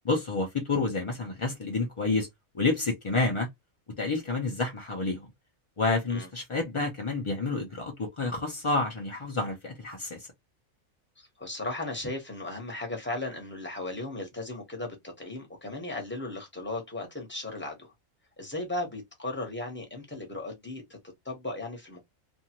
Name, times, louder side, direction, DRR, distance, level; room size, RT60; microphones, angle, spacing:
voice 1, 0.0-2.3 2.5-3.5 4.0-5.3 5.8-10.3, left 3 dB, 55° left, 0.3 m, -29 dB
voice 2, 11.2-17.9 18.4-21.0 21.2-22.0, left 2 dB, 10° left, 0.9 m, -36 dB
2.6 x 2.4 x 2.8 m
omnidirectional pair, 1.4 m